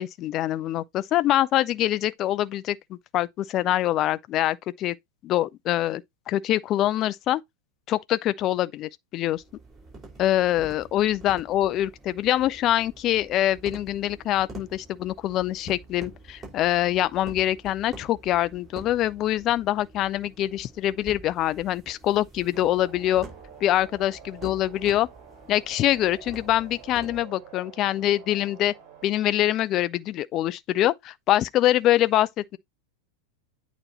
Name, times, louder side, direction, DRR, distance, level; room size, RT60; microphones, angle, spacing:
voice 1, 0.0-4.9 5.2-6.0 6.3-7.4 7.9-9.4 10.2-23.2 23.6-25.1 25.5-28.7 29.0-32.6, left 13 dB, 35° left, 0.4 m, -24 dB
sound 1, 9.3-27.2, right 3 dB, 15° right, 4.4 m, -46 dB
sound 2, 22.5-29.1, right 8 dB, 40° right, 2.4 m, -48 dB
8.8 x 3.0 x 4.1 m
figure-of-eight pair, 90°, 0 cm